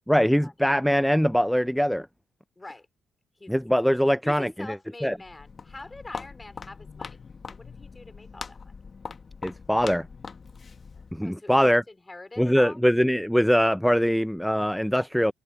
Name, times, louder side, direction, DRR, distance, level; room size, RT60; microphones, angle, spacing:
voice 1, 0.1-2.1 3.5-4.8 5.0-5.2 9.4-10.1 11.1-11.8 12.4-15.3, equal, ahead, 0.3 m, -22 dB
voice 2, 2.6-2.9 3.4-3.5 4.2-7.2 7.5-8.7 11.2-11.6 11.9-12.8, left 2 dB, 20° left, 3.8 m, -44 dB
Walk footsteps, 5.1-11.3, left 5 dB, 40° left, 1.3 m, -42 dB
cardioid pair, 90°, 0 cm